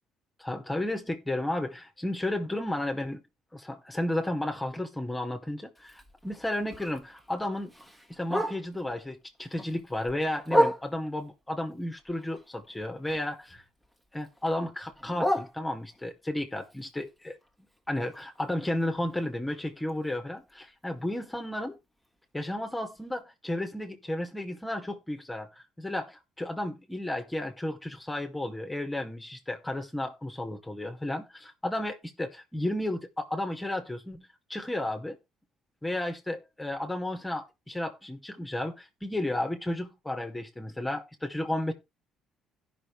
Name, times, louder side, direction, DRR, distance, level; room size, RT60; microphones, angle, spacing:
voice 1, 0.4-3.2 3.5-7.7 8.1-13.6 14.1-17.4 17.9-21.8 22.3-35.2 35.8-41.7, left 1 dB, 10° left, 2.4 m, -33 dB
Bark, 5.7-8.9 9.3-11.2 11.7-13.5 13.8-16.1 16.6-20.5 20.8-20.9 21.2-21.6 22.0-22.1 22.5-22.6 23.1-23.2, equal, 10° right, 2.7 m, -33 dB
16.5 x 6.1 x 3.4 m
hypercardioid pair, 55°, 0 cm